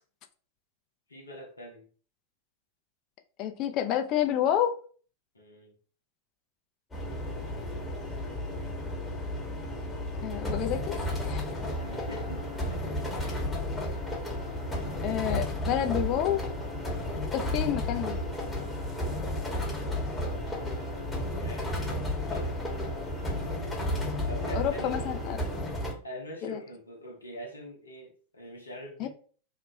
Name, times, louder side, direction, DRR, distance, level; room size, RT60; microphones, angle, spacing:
voice 1, 1.1-1.9 5.3-5.7 11.8-12.8 13.2-13.4 20.3-23.6 24.3-25.1 26.0-29.1, equal, 75° left, 0.8 m, -44 dB
voice 2, 3.4-4.8 10.2-11.5 15.0-16.4 17.3-18.2 24.5-25.4 26.4-26.6 29.0-29.1, left 10 dB, 40° left, 0.5 m, -29 dB
sound 1, 6.9-25.9, left 1 dB, 15° left, 1.0 m, -33 dB
3.0 x 2.2 x 3.8 m
figure-of-eight pair, 90°, 0 cm